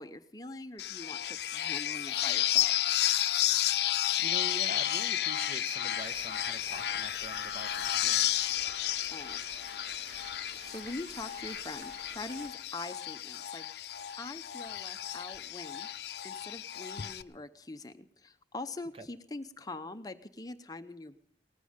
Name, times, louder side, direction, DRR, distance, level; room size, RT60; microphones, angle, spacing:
voice 1, 0.0-2.8 9.1-9.4 10.6-13.7 14.2-15.9 16.2-21.2, left 2 dB, 20° left, 8 dB, 0.6 m, -43 dB
sound 1, 0.8-17.2, left 12 dB, 70° left, 0.6 m, -32 dB
voice 2, 4.2-8.5 18.9-19.1, right 2 dB, 30° right, 8 dB, 1.2 m, -44 dB
sound 2, 6.0-12.5, right 2 dB, 90° right, 3.5 m, -51 dB
19.0 x 15.0 x 5.1 m, 0.66 s
head